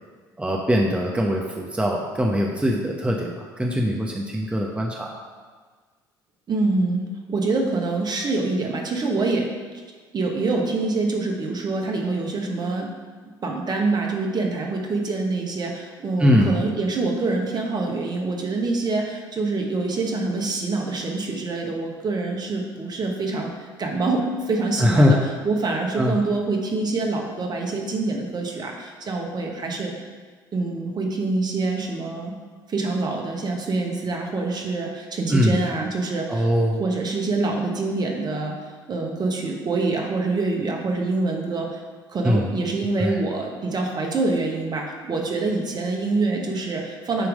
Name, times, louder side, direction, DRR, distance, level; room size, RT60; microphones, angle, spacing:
voice 1, 0.4-5.1 16.2-16.6 24.8-25.2 26.0-26.1 35.3-35.6 36.3-36.8 42.2-42.6 43.0-43.2, equal, 10° right, -1 dB, 0.9 m, -21 dB
voice 2, 6.5-9.5 10.1-12.9 13.4-23.5 23.8-25.2 25.4-30.1 30.5-32.4 32.7-36.5 36.8-38.5 38.9-41.8 42.1-47.3, right 3 dB, 40° right, 1 dB, 1.3 m, -25 dB
9.1 x 3.1 x 5.1 m, 1.5 s
hypercardioid pair, 60°, 11 cm